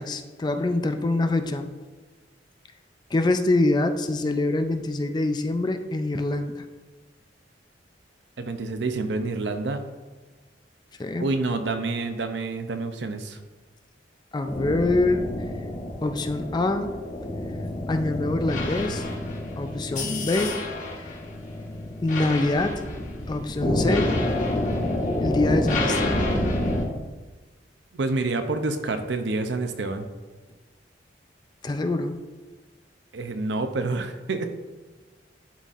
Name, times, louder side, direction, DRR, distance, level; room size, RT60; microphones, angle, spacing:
voice 1, 0.0-1.7 3.1-6.6 11.0-11.3 14.3-15.2 16.0-17.0 17.9-19.0 19.6-20.6 22.0-22.8 23.3-24.2 25.2-26.3 31.6-32.2, left 2 dB, 25° left, 8 dB, 0.3 m, -25 dB
voice 2, 8.4-9.8 11.2-13.4 27.9-30.1 33.1-34.4, right 3 dB, 70° right, 8 dB, 0.6 m, -28 dB
sound 1, 14.5-26.8, left 1 dB, 45° left, 1.0 m, -28 dB
11.0 x 4.1 x 2.5 m, 1.3 s
head